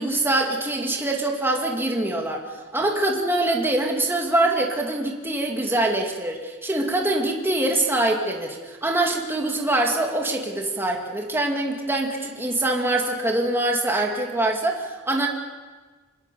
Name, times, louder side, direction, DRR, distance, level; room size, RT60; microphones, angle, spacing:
voice 1, 0.0-15.3, right 2 dB, 10° right, 0 dB, 2.4 m, -24 dB
27.0 x 19.5 x 7.0 m, 1.4 s
head